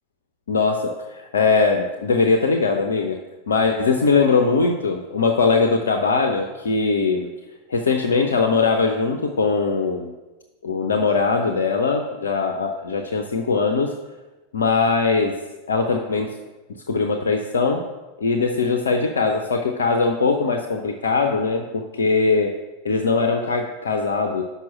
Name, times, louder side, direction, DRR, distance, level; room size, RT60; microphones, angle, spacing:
voice 1, 0.5-3.2 3.5-7.3 7.7-10.1 10.6-13.9 14.5-15.4 15.7-16.3 16.9-17.9 18.2-22.5 22.8-24.4, left 4 dB, 65° left, 4 dB, 0.6 m, -21 dB
6.1 x 5.5 x 7.1 m, 1.1 s
figure-of-eight pair, 90°, 0 cm